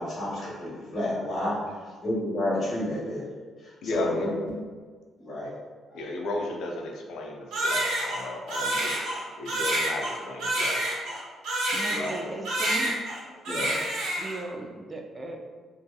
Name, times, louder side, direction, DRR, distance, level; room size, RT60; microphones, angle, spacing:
voice 1, 0.0-3.2 3.6-4.5 5.2-5.5 5.9-6.0 11.9-12.1 13.4-13.8, left 1 dB, 45° left, -7 dB, 1.0 m, -31 dB
voice 2, 3.8-4.3 5.9-9.1 9.4-10.9, left 2 dB, 80° left, 1 dB, 0.4 m, -34 dB
Crying sobbing, 7.5-12.2 12.5-13.2 13.5-14.4, right 1 dB, 85° right, 0.7 m, -28 dB
voice 3, 11.7-13.0 14.1-15.4, right 2 dB, 30° right, 3 dB, 0.3 m, -37 dB
2.6 x 2.5 x 2.2 m, 1.5 s
cardioid pair, 90°, 0 cm